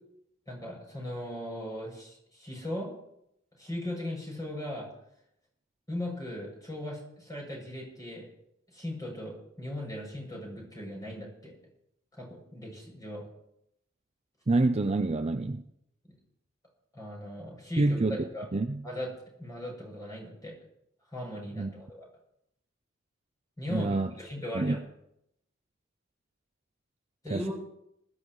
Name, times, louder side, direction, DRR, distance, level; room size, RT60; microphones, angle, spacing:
voice 1, 0.5-2.9 3.6-4.9 5.9-8.3 8.7-11.6 12.1-13.2 16.9-18.5 18.8-19.1 19.4-20.6 21.1-22.1 23.6-24.8 27.2-27.6, left 1 dB, 20° left, 7.5 m, -38 dB
voice 2, 14.5-15.6 17.8-18.8 21.6-21.7 23.7-24.1 24.5-24.8 27.3-27.6, right 2 dB, 30° right, 0.5 m, -27 dB
21.0 x 13.5 x 3.2 m
head